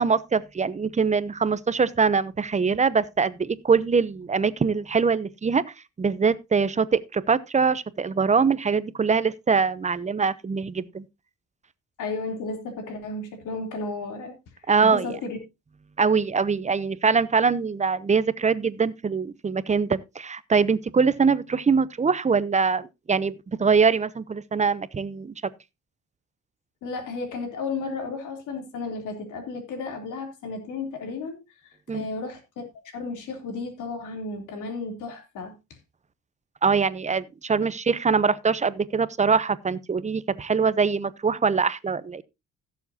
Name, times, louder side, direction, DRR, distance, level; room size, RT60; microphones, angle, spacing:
voice 1, 0.0-5.6 6.0-11.0 14.7-15.1 16.0-25.3 31.9-32.0 36.6-42.2, right 5 dB, 25° right, 0.7 m, -23 dB
voice 2, 12.0-14.3 14.8-15.4 26.8-31.4 31.6-32.6 32.9-35.5, left 3 dB, 85° left, 3.3 m, -33 dB
16.5 x 7.2 x 2.8 m
cardioid pair, 90°, 30 cm